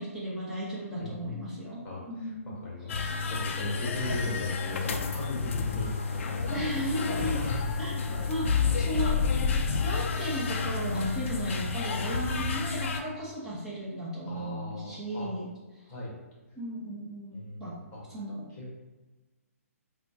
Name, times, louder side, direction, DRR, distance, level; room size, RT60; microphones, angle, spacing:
voice 1, 0.0-1.8 2.1-2.6 2.9-3.0 6.5-7.4 7.8-9.2 9.8-15.5 16.5-17.7 18.1-18.5, equal, 5° right, -9 dB, 1.2 m, -35 dB
voice 2, 1.0-1.4 1.8-6.9 7.3-7.6 8.1-8.9 14.2-15.3 15.9-16.1 17.3-18.0 18.5-18.7, left 2 dB, 20° left, -4 dB, 1.3 m, -38 dB
sound 1, 2.9-13.0, left 5 dB, 55° left, 0.4 m, -30 dB
sound 2, 5.6-12.8, right 1 dB, 35° right, 1.2 m, -49 dB
4.3 x 2.3 x 2.8 m, 1.2 s
hypercardioid pair, 140°, 8 cm